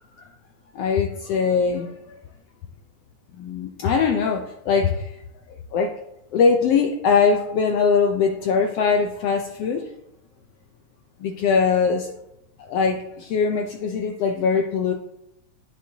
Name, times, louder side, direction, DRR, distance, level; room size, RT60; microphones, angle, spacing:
voice 1, 0.7-2.2 3.4-5.1 5.7-5.9 6.3-9.8 11.2-12.1 12.6-14.9, left 5 dB, 80° left, 3 dB, 1.3 m, -21 dB
12.0 x 6.2 x 2.8 m, 0.81 s
omnidirectional pair, 3.6 m